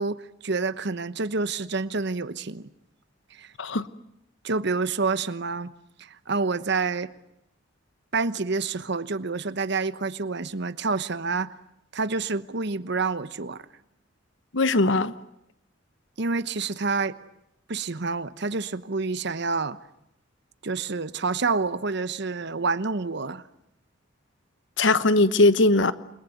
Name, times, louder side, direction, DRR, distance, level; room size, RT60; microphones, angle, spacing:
voice 1, 0.0-2.7 3.3-3.5 4.4-5.7 6.0-7.1 8.1-11.5 11.9-13.6 16.2-17.2 17.7-19.8 20.6-23.4, right 4 dB, 60° right, 1.1 m, -28 dB
voice 2, 14.5-15.1 24.8-25.9, left 2 dB, 70° left, 1.1 m, -20 dB
28.5 x 22.0 x 9.3 m
head